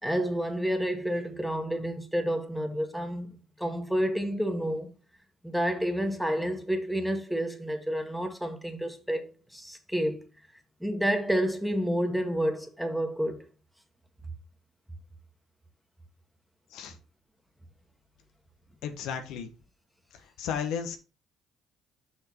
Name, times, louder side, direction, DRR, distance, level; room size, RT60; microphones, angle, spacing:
voice 1, 0.0-4.9 5.4-10.2 10.8-13.5, equal, ahead, 1.8 m, -29 dB
voice 2, 18.8-19.5 20.4-21.0, left 7 dB, 70° left, 1.2 m, -33 dB
6.4 x 5.7 x 4.4 m
hypercardioid pair, 60°, 0 cm